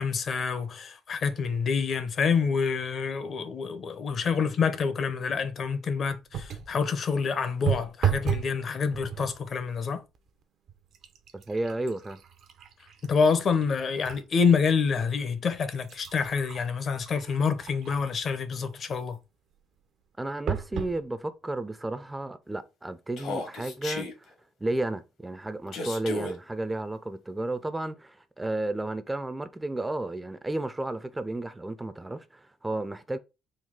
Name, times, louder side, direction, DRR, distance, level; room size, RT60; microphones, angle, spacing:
voice 1, 0.0-10.0 13.0-19.2, left 5 dB, 50° left, 0.7 m, -27 dB
sound 1, 6.3-6.8 7.7-8.6 8.9-9.4 10.1-10.3 10.7-14.3 14.7-14.8 15.5-18.2 20.5-21.0 21.7-21.8 22.0-22.1, right 8 dB, 65° right, 0.6 m, -33 dB
voice 2, 11.3-12.2 20.2-24.3 24.6-33.2, right 2 dB, 15° right, 0.4 m, -33 dB
Human voice, 23.2-24.1 25.7-26.3, left 3 dB, 70° left, 1.2 m, -34 dB
3.9 x 2.3 x 3.6 m
supercardioid pair, 75°, 0 cm